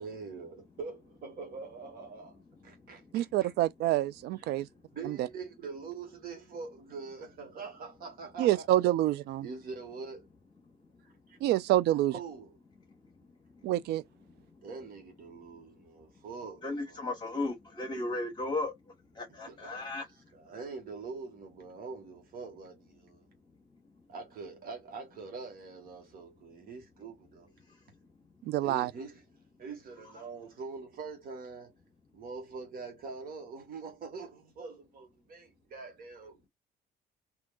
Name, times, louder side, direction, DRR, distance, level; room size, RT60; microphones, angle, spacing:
voice 1, 0.0-3.5 4.3-4.6 4.9-8.7 9.4-10.3 11.0-11.4 12.1-12.6 14.6-17.2 19.5-19.9 20.3-23.3 24.1-27.5 28.6-29.2 29.6-31.7 32.1-36.5, right 4 dB, 60° right, 1.6 m, -44 dB
voice 2, 2.3-3.4 4.5-5.0 10.6-11.5 12.9-13.7 14.2-14.7 15.3-16.3 16.6-20.5 23.1-24.0 27.6-28.3, left 2 dB, 25° left, 1.5 m, -40 dB
voice 3, 3.1-4.7 5.1-5.3 8.4-9.4 11.4-12.1 13.6-14.0 28.5-28.9, right 14 dB, 75° right, 0.4 m, -27 dB
3.6 x 2.8 x 2.4 m
cardioid pair, 110°, 17 cm